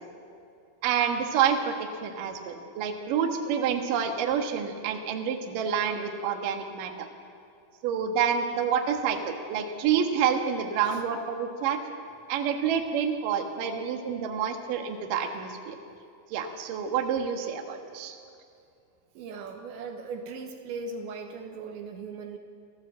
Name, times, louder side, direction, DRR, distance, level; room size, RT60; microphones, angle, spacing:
voice 1, 0.8-1.7 2.0-7.1 7.8-11.8 12.3-15.8 16.3-18.2, right 7 dB, 60° right, 4 dB, 2.5 m, -28 dB
voice 2, 19.2-22.4, right 4 dB, 75° right, 4 dB, 3.2 m, -38 dB
26.5 x 15.5 x 7.6 m, 2.5 s
omnidirectional pair, 5.7 m